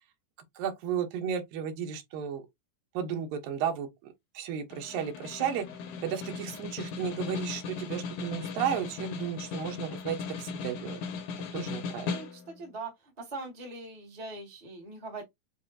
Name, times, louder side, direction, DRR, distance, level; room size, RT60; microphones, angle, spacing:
voice 1, 0.6-2.4 2.9-3.9 4.3-5.7 6.0-11.0 11.5-12.2, right 8 dB, 85° right, 2.7 m, -33 dB
Snare drum, 4.7-12.7, left 5 dB, 70° left, 2.2 m, -38 dB
voice 2, 12.1-15.2, right 3 dB, 20° right, 1.1 m, -41 dB
6.9 x 2.5 x 2.6 m
omnidirectional pair, 3.9 m